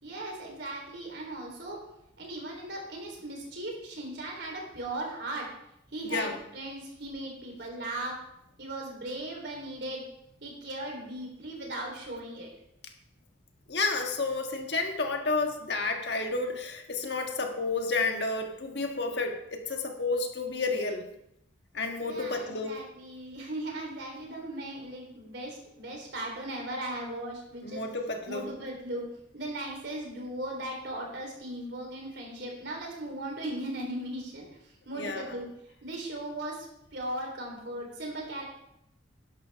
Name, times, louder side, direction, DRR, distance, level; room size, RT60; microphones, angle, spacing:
voice 1, 0.0-1.8 2.2-5.5 5.9-8.2 8.6-10.0 10.4-12.5 22.1-27.8 28.3-35.5 35.8-38.4, right 1 dB, 60° right, 0 dB, 3.7 m, -38 dB
voice 2, 6.0-6.4 13.7-21.1 21.7-22.7 27.6-28.5 35.0-35.3, left 3 dB, 60° left, 4 dB, 1.5 m, -31 dB
11.5 x 11.5 x 3.5 m, 0.79 s
head